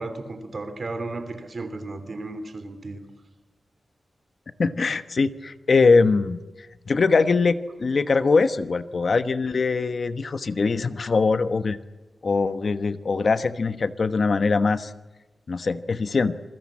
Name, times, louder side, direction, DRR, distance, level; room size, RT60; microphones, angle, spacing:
voice 1, 0.0-3.0, right 2 dB, 40° right, 9 dB, 3.0 m, -34 dB
voice 2, 4.6-6.4 6.9-11.8 12.2-14.9 15.5-16.3, left 4 dB, 50° left, 12 dB, 1.1 m, -22 dB
27.5 x 22.0 x 8.6 m, 1.1 s
wide cardioid pair, 180°, 0 cm